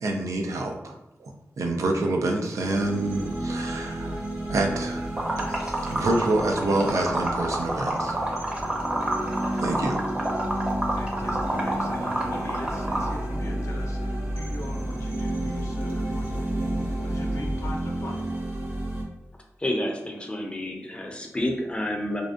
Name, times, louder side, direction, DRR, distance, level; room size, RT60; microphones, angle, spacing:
voice 1, 0.0-1.3 1.6-4.2 4.5-5.1 5.5-8.2 9.6-10.0, right 2 dB, 90° right, 2 dB, 0.4 m, -27 dB
sound 1, 2.6-19.0, right 1 dB, 50° right, 0.8 m, -32 dB
Liquid, 5.2-13.2, right 1 dB, 20° right, 0.6 m, -28 dB
voice 2, 10.9-18.2, left 1 dB, 70° left, 0 dB, 0.5 m, -40 dB
sound 2, 11.2-17.7, equal, 70° right, 1.1 m, -33 dB
voice 3, 19.6-22.2, left 1 dB, 20° left, 2 dB, 0.5 m, -29 dB
2.5 x 2.1 x 2.4 m, 0.88 s
cardioid pair, 50°, 5 cm